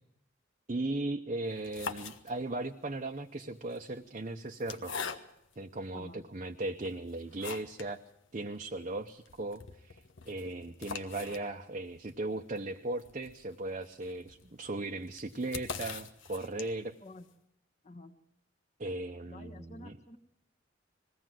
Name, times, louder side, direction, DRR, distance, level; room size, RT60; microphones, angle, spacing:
voice 1, 0.7-4.9 5.6-8.0 8.3-16.9 18.8-20.0, right 2 dB, 40° right, 3 dB, 0.7 m, -37 dB
sound 1, 1.5-2.7 3.6-5.6 6.2-6.3 6.8-8.0 8.3-8.4 8.6-8.7 9.1-17.0, left 6 dB, 85° left, 1.3 m, -44 dB
voice 2, 5.9-6.2 17.0-17.3 17.8-18.2 19.3-20.2, left 2 dB, 35° left, 6 dB, 1.3 m, -49 dB
21.0 x 16.5 x 7.5 m, 0.80 s
head